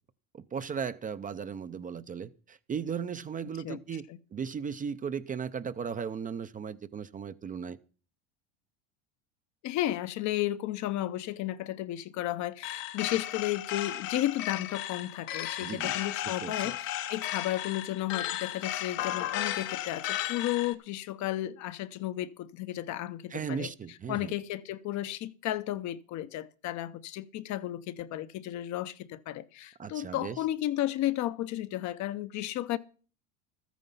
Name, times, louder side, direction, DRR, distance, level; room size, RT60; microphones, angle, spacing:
voice 1, 0.3-7.8 15.6-15.9 16.3-16.7 23.3-24.3 29.8-30.4, right 7 dB, 20° right, 0.5 m, -36 dB
voice 2, 9.6-23.7 24.1-32.8, left 14 dB, 50° left, 0.7 m, -33 dB
sound 1, 12.6-20.7, left 13 dB, 80° left, 1.3 m, -35 dB
13.0 x 9.3 x 5.5 m
supercardioid pair, 100°, 38 cm